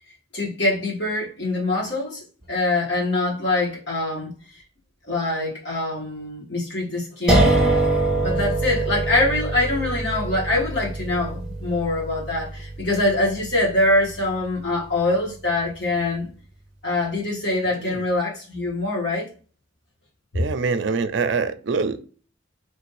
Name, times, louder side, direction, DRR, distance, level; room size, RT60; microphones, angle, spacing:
voice 1, 0.3-4.6 5.1-7.5 8.1-16.3 16.8-19.3 20.3-20.4, left 2 dB, 65° left, 1.6 m, -24 dB
sound 1, 7.3-14.2, right 2 dB, 5° right, 0.8 m, -24 dB
voice 2, 20.3-22.1, right 4 dB, 70° right, 0.4 m, -24 dB
3.1 x 2.6 x 3.1 m
head